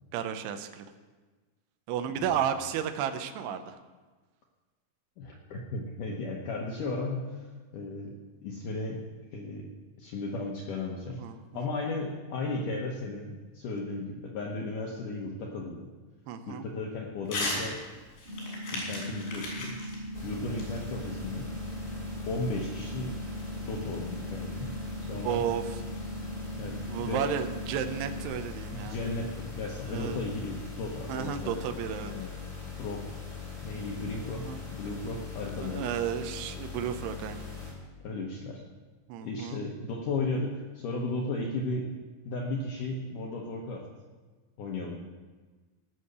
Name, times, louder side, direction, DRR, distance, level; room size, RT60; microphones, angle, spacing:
voice 1, 0.1-0.9 1.9-3.8 11.2-11.7 16.3-16.6 25.2-25.8 26.9-29.0 29.9-30.2 31.1-32.1 34.2-34.6 35.6-37.5 39.1-39.6, right 9 dB, 85° right, 8 dB, 2.8 m, -33 dB
voice 2, 5.2-7.5 7.7-9.0 9.3-9.7 10.0-11.2 11.5-15.9 16.5-17.8 18.7-19.8 20.2-21.5 22.3-23.2 23.6-24.8 25.0-25.5 26.6-27.3 28.7-31.6 32.0-32.3 32.8-33.1 33.6-35.9 38.0-38.6 39.2-41.9 42.3-43.8 44.6-45.0, left 2 dB, 70° left, -1 dB, 2.1 m, -35 dB
Crumpling crinkling / Tearing, 17.3-17.6 18.0-21.3, left 2 dB, 85° left, 5.4 m, -36 dB
sound 1, 18.3-28.3, right 1 dB, 15° right, 2.6 m, -39 dB
sound 2, 20.1-37.7, left 6 dB, 10° left, 4.6 m, -41 dB
17.5 x 6.3 x 6.8 m, 1.3 s
omnidirectional pair, 4.8 m